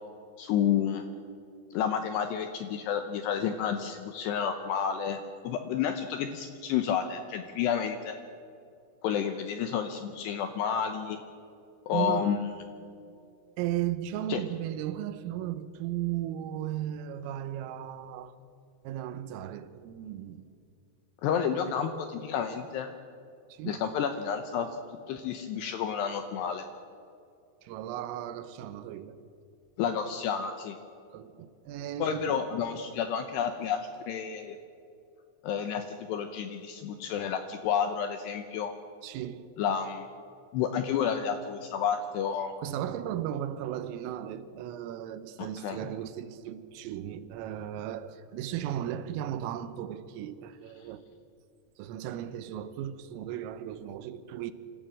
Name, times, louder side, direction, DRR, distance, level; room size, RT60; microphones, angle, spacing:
voice 1, 0.4-1.0 1.7-5.2 5.4-8.2 9.0-11.2 11.9-12.4 14.3-14.4 21.2-22.9 23.6-24.7 25.1-26.7 29.8-30.8 32.0-34.6 35.4-38.7 39.6-40.1 40.5-42.5 45.4-45.8, left 8 dB, 80° left, 2.5 m, -30 dB
voice 2, 11.9-12.3 13.6-18.4 18.9-20.5 21.7-21.8 23.5-23.8 27.6-29.2 31.1-32.4 39.0-39.5 42.6-51.0 51.8-54.5, right 11 dB, 85° right, 3.5 m, -36 dB
26.0 x 14.5 x 7.6 m
omnidirectional pair, 5.8 m